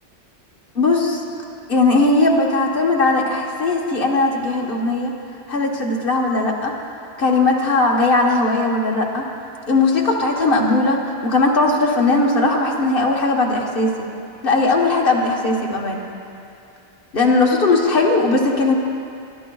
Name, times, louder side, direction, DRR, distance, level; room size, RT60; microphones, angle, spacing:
voice 1, 0.7-1.2 1.7-5.1 5.5-6.7 7.2-9.2 9.7-14.1 14.4-16.1 17.1-18.7, left 2 dB, 60° left, -1 dB, 1.4 m, -18 dB
18.5 x 12.5 x 2.3 m, 2.5 s
omnidirectional pair, 1.1 m